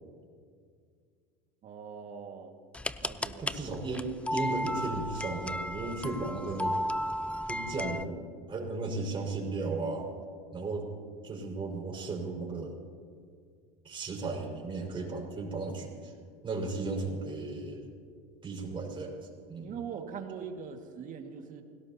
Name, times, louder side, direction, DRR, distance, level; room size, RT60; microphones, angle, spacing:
voice 1, 1.6-2.5 3.0-3.5 19.6-21.6, right 6 dB, 45° right, 4 dB, 2.1 m, -42 dB
sound 1, 2.7-8.1, left 1 dB, 5° left, 0.5 m, -34 dB
voice 2, 3.4-6.8 7.5-8.2 8.5-10.1 10.5-10.9 11.2-12.8 13.8-16.1 16.4-17.9 18.4-19.2 19.5-19.8, right 3 dB, 25° right, -1 dB, 5.4 m, -35 dB
28.0 x 17.5 x 2.9 m, 2.1 s
supercardioid pair, 100°, 19 cm